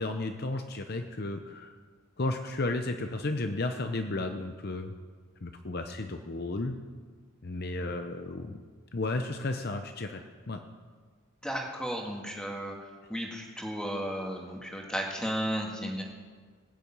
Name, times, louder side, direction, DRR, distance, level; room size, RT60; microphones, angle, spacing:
voice 1, 0.0-1.7 2.2-4.9 5.4-6.8 7.4-8.6 8.9-10.6, left 2 dB, 45° left, 6 dB, 0.7 m, -33 dB
voice 2, 11.4-16.0, equal, 5° left, 0 dB, 1.8 m, -34 dB
18.0 x 7.0 x 8.7 m, 1.5 s
head